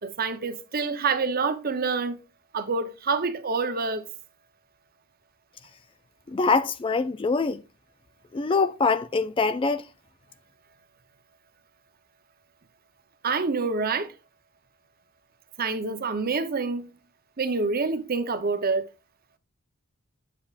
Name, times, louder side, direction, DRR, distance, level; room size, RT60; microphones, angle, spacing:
voice 1, 0.0-2.2 2.5-4.0 13.2-14.1 15.6-16.9 17.4-18.9, right 4 dB, 40° right, 0.7 m, -27 dB
voice 2, 6.3-7.6 8.3-9.8, left 4 dB, 25° left, 0.3 m, -24 dB
8.4 x 7.4 x 2.4 m
head